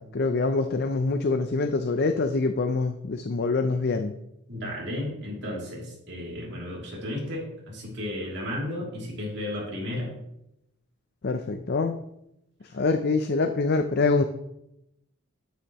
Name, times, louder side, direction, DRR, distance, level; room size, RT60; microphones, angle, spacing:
voice 1, 0.0-4.1 11.2-11.9 12.7-14.2, left 3 dB, 45° left, 7 dB, 0.5 m, -25 dB
voice 2, 4.5-10.1, left 1 dB, 55° right, -3 dB, 2.9 m, -33 dB
9.7 x 9.2 x 3.0 m, 0.82 s
head